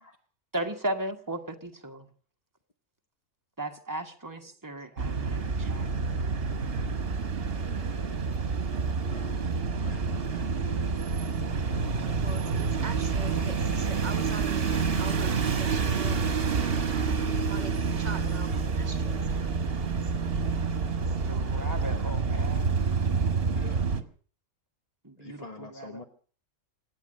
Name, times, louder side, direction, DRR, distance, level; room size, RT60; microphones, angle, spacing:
voice 1, 0.5-2.1 3.6-5.9 11.3-11.9 21.3-23.1 25.0-26.0, right 1 dB, 15° right, 4 dB, 1.5 m, -37 dB
sound 1, 5.0-24.0, right 5 dB, 50° right, 1.6 m, -28 dB
voice 2, 9.0-9.4 9.8-10.5 10.7-10.9 13.2-13.3 18.5-18.7 22.0-22.1 23.5-23.8 25.2-26.0, left 3 dB, 35° left, 7 dB, 1.0 m, -46 dB
voice 3, 11.9-19.6 19.9-22.3, right 3 dB, 35° right, 10 dB, 1.4 m, -45 dB
25.0 x 9.0 x 6.4 m, 0.43 s
omnidirectional pair, 1.3 m